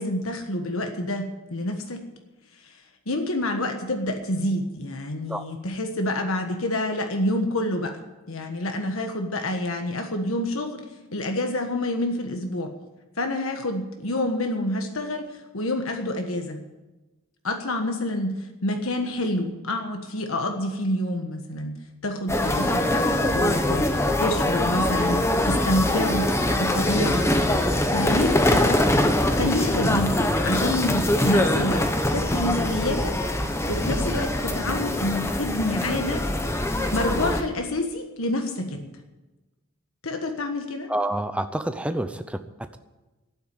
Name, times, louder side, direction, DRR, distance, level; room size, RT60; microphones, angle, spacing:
voice 1, 0.0-2.0 2.6-2.8 3.1-8.0 8.3-10.8 11.1-12.7 13.2-16.6 17.4-21.8 22.0-26.3 26.6-27.3 27.9-28.8 29.3-33.2 33.7-36.2 36.6-38.9 40.0-40.9, left 1 dB, 80° left, 4 dB, 1.5 m, -28 dB
sound 1, 22.3-37.4, left 1 dB, 15° left, 1.0 m, -23 dB
voice 2, 40.9-42.8, right 1 dB, 5° right, 9 dB, 0.6 m, -28 dB
12.5 x 9.2 x 9.6 m, 1.1 s
head